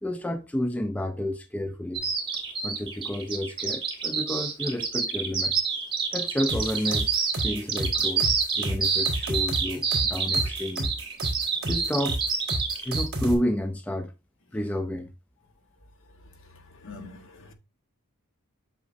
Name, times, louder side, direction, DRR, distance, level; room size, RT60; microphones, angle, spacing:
voice 1, 0.0-2.1 2.6-5.6 6.1-7.2 7.4-8.3 8.6-10.9 11.7-12.2 12.8-14.1 14.5-15.1, left 1 dB, 5° left, 0.4 m, -30 dB
Bird vocalization bird call bird song, 1.9-13.1, right 5 dB, 25° right, 1.7 m, -27 dB
sound 1, 6.5-13.3, right 1 dB, 45° right, 2.8 m, -31 dB
voice 2, 16.8-17.5, left 3 dB, 60° left, 1.3 m, -44 dB
8.2 x 5.8 x 2.5 m
head